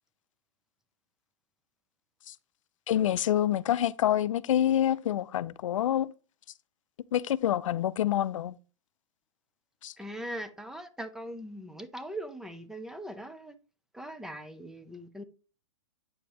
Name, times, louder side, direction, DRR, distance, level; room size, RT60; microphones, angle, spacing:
voice 1, 2.9-6.1 7.1-8.6 9.8-9.9, left 11 dB, 80° left, 0.5 m, -27 dB
voice 2, 10.0-13.5 13.9-15.2, right 1 dB, 5° right, 0.5 m, -40 dB
8.6 x 5.2 x 2.9 m
hypercardioid pair, 145°, 16 cm